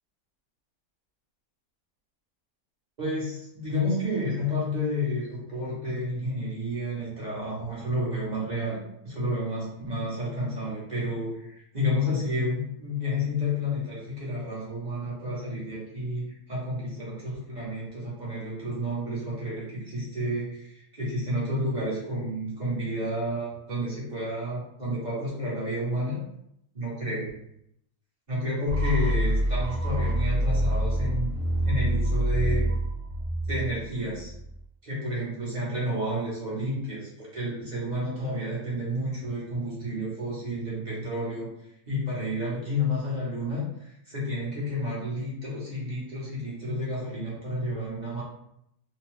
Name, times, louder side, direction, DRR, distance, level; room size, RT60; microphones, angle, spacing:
voice 1, 3.0-8.8 9.0-26.2 26.7-27.3 28.3-31.3 31.6-32.8 33.5-34.3 34.8-41.5 41.9-43.6 44.1-48.2, left 1 dB, 35° right, -7 dB, 0.7 m, -30 dB
sound 1, 28.7-34.6, right 1 dB, 75° right, 1.1 m, -26 dB
2.7 x 2.1 x 3.0 m, 0.77 s
omnidirectional pair, 1.8 m